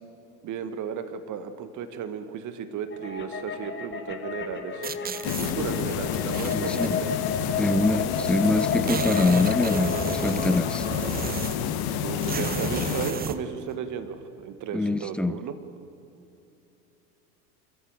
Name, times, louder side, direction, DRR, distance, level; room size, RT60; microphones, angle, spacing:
voice 1, 0.4-4.9 5.2-7.1 9.8-10.5 12.0-15.5, right 7 dB, 40° right, 10 dB, 1.9 m, -34 dB
sound 1, 2.9-11.1, left 5 dB, 25° left, 2.6 m, -32 dB
sound 2, 4.8-5.5 6.1-6.9 7.9-8.0 8.2-8.3 8.6-11.7 12.2-13.4, right 6 dB, 20° right, 1.0 m, -33 dB
sound 3, 5.2-13.1, left 9 dB, 50° left, 2.3 m, -29 dB
voice 2, 6.5-7.0 7.6-9.9 10.2-10.9 14.7-15.4, left 2 dB, ahead, 16 dB, 0.4 m, -24 dB
29.5 x 14.0 x 9.1 m, 2.9 s
figure-of-eight pair, 80°, 46 cm